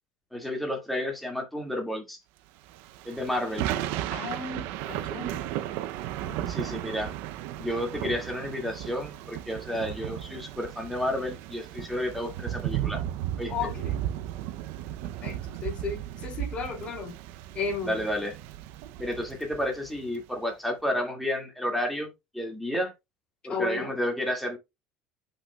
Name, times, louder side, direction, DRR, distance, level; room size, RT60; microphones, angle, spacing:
voice 1, 0.3-2.2 3.1-3.7 6.5-7.1 7.6-13.0 13.4-13.5 17.8-18.4 19.0-22.9 23.4-24.6, left 1 dB, ahead, 2.2 m, -31 dB
Thunder / Rain, 2.7-20.2, right 12 dB, 65° right, 0.6 m, -35 dB
voice 2, 4.1-5.5 6.2-6.5 13.5-14.0 15.2-17.2 17.5-18.0 23.5-24.0, left 4 dB, 30° left, 2.9 m, -34 dB
8.2 x 5.5 x 2.3 m
cardioid pair, 160°, 4 cm